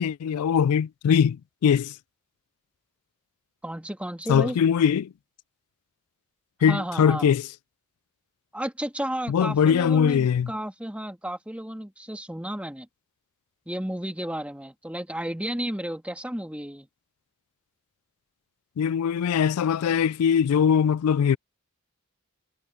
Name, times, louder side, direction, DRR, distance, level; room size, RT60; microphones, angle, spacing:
voice 1, 0.0-2.0 4.3-5.1 6.6-7.5 9.3-10.5 18.8-21.4, left 7 dB, 80° left, 0.3 m, -21 dB
voice 2, 3.6-4.6 6.7-7.3 8.5-12.9 13.7-16.9, right 1 dB, 5° right, 1.8 m, -32 dB
head